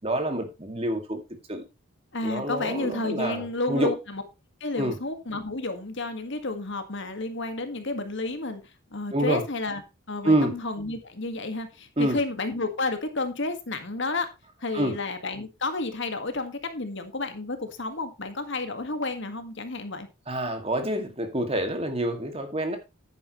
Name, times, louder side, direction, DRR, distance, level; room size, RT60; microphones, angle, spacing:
voice 1, 0.0-1.2 1.5-1.6 2.2-3.9 4.8-5.0 9.1-9.4 10.2-10.6 12.0-12.2 14.7-14.9 20.3-22.8, right 1 dB, 25° right, 2.1 m, -27 dB
voice 2, 2.1-4.2 4.6-9.8 10.1-14.3 14.6-20.1, left 3 dB, 55° left, 1.7 m, -31 dB
11.0 x 9.5 x 3.1 m
head